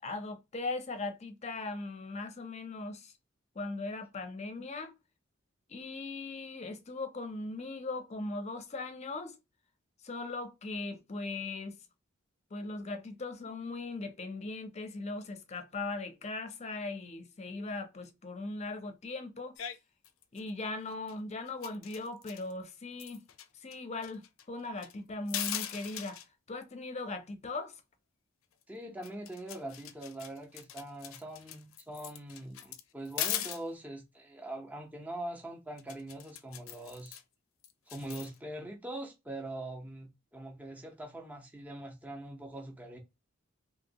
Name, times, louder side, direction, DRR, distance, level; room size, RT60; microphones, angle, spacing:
voice 1, 0.0-3.1 3.6-4.9 5.7-9.3 10.0-11.8 12.5-19.5 20.3-23.2 23.6-26.2 26.5-27.7, left 3 dB, 35° left, 0.6 m, -39 dB
sound 1, 19.6-19.8 20.0-20.5 20.9-21.2 21.5-23.5 23.7-23.8 24.0-24.9 25.3-26.3 28.6-28.7 29.0-33.6 35.8-37.2 37.6-38.4, left 11 dB, 90° left, 0.4 m, -40 dB
voice 2, 28.7-37.2 37.9-43.0, right 1 dB, 10° right, 0.6 m, -43 dB
2.8 x 2.8 x 2.7 m
head